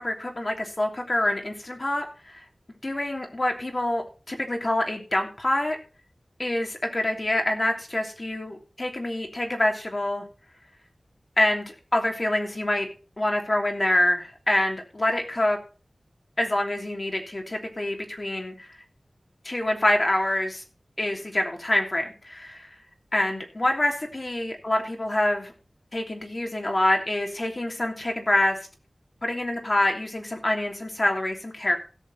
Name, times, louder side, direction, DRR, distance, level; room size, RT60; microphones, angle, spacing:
voice 1, 0.0-2.4 2.8-5.8 6.4-10.2 11.4-12.9 13.2-15.6 16.4-18.7 19.4-20.6 21.0-22.7 23.1-25.5 25.9-28.6 29.2-31.8, left 1 dB, 45° left, 2 dB, 3.0 m, -26 dB
16.5 x 7.1 x 4.0 m, 0.35 s
wide cardioid pair, 50°, 0 cm